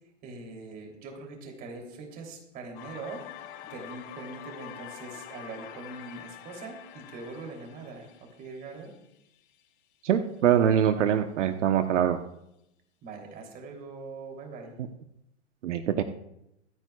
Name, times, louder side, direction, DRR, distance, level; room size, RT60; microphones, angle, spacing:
voice 1, 0.2-3.2 3.7-8.9 13.0-14.7, right 3 dB, 25° right, 2 dB, 3.1 m, -42 dB
sound 1, 2.7-9.6, left 11 dB, 45° left, 3.3 m, -46 dB
voice 2, 10.0-12.2 15.6-16.0, right 9 dB, 75° right, 7 dB, 1.0 m, -23 dB
24.5 x 9.2 x 2.3 m, 0.83 s
hypercardioid pair, 155°, 36 cm